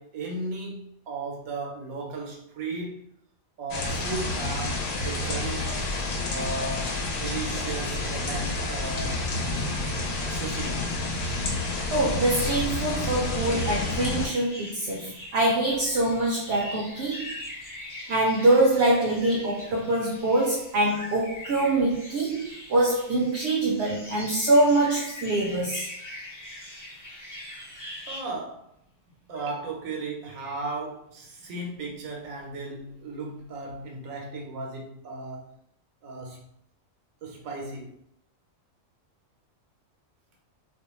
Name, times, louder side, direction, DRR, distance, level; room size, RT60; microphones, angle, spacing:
voice 1, 0.0-3.1 3.6-5.7 6.3-9.3 10.3-10.9 11.2-11.3 16.6-16.7 19.7-19.9 28.1-28.7 29.3-35.6 36.0-36.5 37.2-37.9, right 3 dB, 80° right, 1.0 m, -36 dB
sound 1, 3.7-14.3, left 2 dB, 80° left, 1.0 m, -29 dB
voice 2, 11.9-17.3 18.1-25.9, right 2 dB, 65° right, 0.7 m, -24 dB
sound 2, 13.4-28.2, left 1 dB, 20° left, 0.5 m, -42 dB
2.4 x 2.1 x 2.9 m
omnidirectional pair, 1.4 m